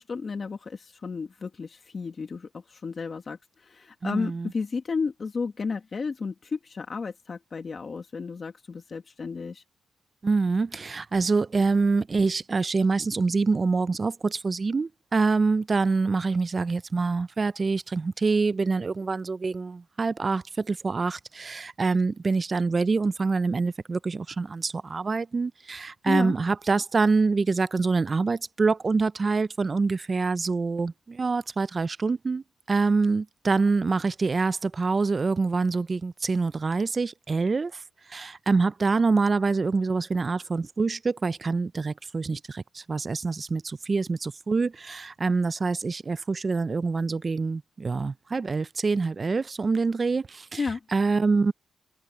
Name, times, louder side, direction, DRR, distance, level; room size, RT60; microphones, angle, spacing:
voice 1, 0.0-9.6 26.1-26.3 50.6-50.8, left 4 dB, 40° left, 1.8 m, -32 dB
voice 2, 4.0-4.5 10.2-37.8 38.1-50.6 50.9-51.5, right 4 dB, 35° right, 0.5 m, -25 dB
cardioid pair, 110°, 0 cm